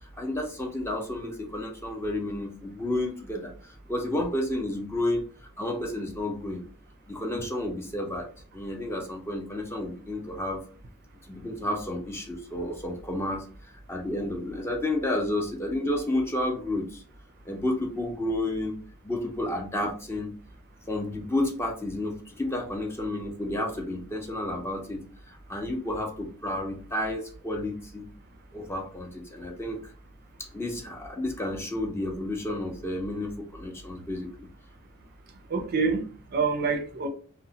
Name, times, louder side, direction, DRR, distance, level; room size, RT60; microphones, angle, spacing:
voice 1, 0.2-3.5 3.9-5.2 5.6-6.6 7.1-8.3 8.5-10.6 11.3-13.4 13.9-17.0 17.5-18.7 19.0-20.3 20.9-25.0 25.5-28.1 28.5-29.8 30.5-34.5, left 1 dB, 10° left, 0.4 m, -31 dB
voice 2, 35.5-37.1, right 4 dB, 45° right, 0.4 m, -27 dB
2.8 x 2.0 x 2.7 m
head